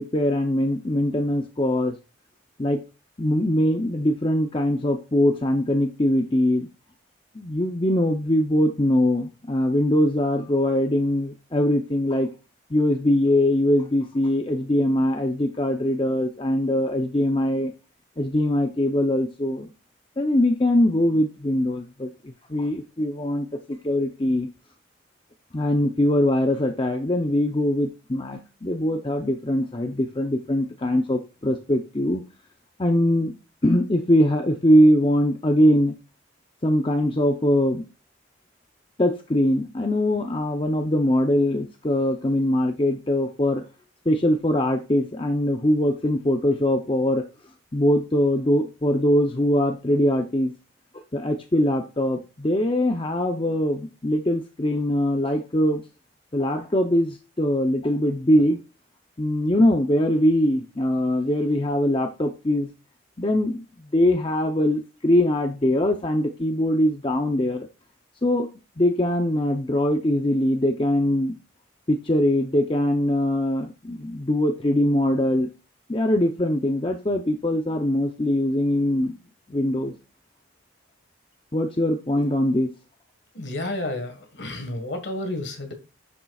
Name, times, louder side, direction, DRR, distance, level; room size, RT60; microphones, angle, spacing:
voice 1, 0.0-1.9 2.6-2.8 3.2-6.7 7.3-12.3 12.7-17.7 18.2-19.7 20.2-24.5 25.5-32.2 32.8-33.3 33.6-35.9 36.6-37.9 39.0-43.6 44.1-47.3 47.7-50.5 50.9-55.8 56.3-58.6 59.2-62.7 63.2-67.7 68.2-68.5 68.8-71.3 71.9-75.5 75.9-79.2 79.5-79.9 81.5-82.7, left 1 dB, 25° left, 0.6 m, -22 dB
voice 2, 83.3-85.7, left 1 dB, 60° left, 1.6 m, -31 dB
10.0 x 6.7 x 2.4 m
head